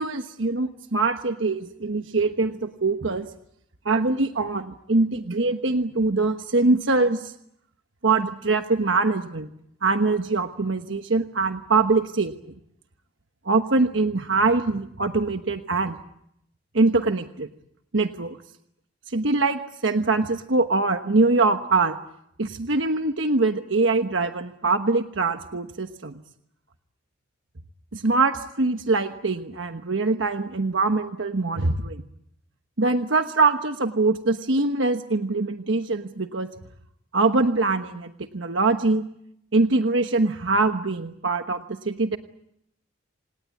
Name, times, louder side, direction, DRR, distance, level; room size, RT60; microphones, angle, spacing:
voice 1, 0.0-3.3 3.8-7.3 8.0-9.5 9.8-12.3 13.4-16.0 16.7-17.5 17.9-18.4 19.1-22.0 22.4-26.1 27.9-32.0 32.8-36.5 37.1-39.0 39.5-42.2, right 3 dB, 75° right, 7 dB, 1.2 m, -23 dB
27.5 x 19.0 x 8.5 m, 0.75 s
head